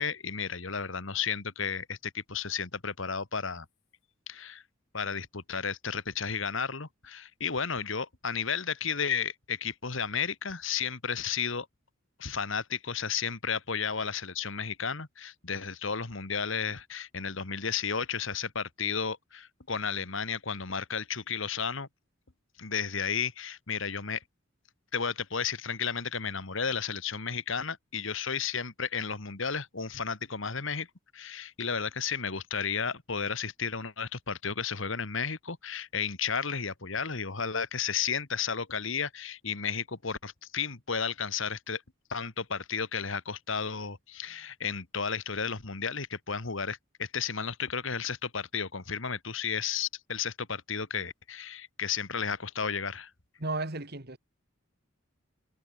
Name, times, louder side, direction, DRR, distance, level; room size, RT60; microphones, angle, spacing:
voice 1, 0.0-3.7 4.3-4.6 4.9-11.7 12.2-21.9 22.6-24.2 24.9-30.9 31.1-41.8 42.1-53.1, left 6 dB, 70° left, 1.9 m, -33 dB
voice 2, 53.4-54.2, right 2 dB, 50° right, 2.5 m, -34 dB
head